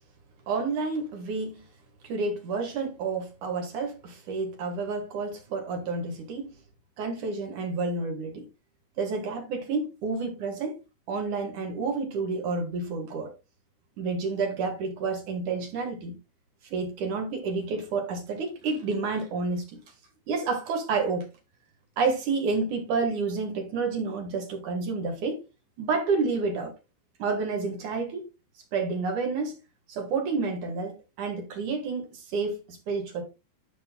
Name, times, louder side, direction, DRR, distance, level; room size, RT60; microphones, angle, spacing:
voice 1, 0.5-1.6 2.0-6.5 7.0-8.4 9.0-10.8 11.1-13.3 14.0-16.2 16.7-19.8 20.3-21.3 22.0-25.4 25.8-26.7 27.2-28.2 28.7-29.6 29.9-33.2, right 4 dB, 60° right, 2.2 m, -29 dB
13.5 x 5.4 x 2.2 m
omnidirectional pair, 5.3 m